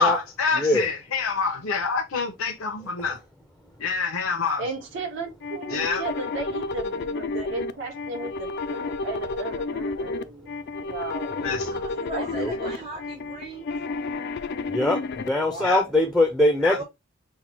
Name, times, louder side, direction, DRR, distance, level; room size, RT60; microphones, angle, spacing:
voice 1, 0.0-3.2 3.8-4.7 5.7-6.0 11.4-11.8 15.6-15.8 16.6-16.8, left 5 dB, 85° left, 0.8 m, -26 dB
voice 2, 0.6-0.9 11.3-11.8 12.4-12.5 14.7-16.8, left 1 dB, ahead, 0.5 m, -23 dB
voice 3, 4.6-10.5 10.8-11.4 12.1-12.3, right 3 dB, 65° right, 1.5 m, -35 dB
sound 1, 5.4-15.3, left 3 dB, 55° left, 0.4 m, -31 dB
voice 4, 11.7-13.7 15.5-15.8 16.7-16.8, right 2 dB, 30° right, 0.9 m, -37 dB
5.6 x 2.2 x 2.9 m
head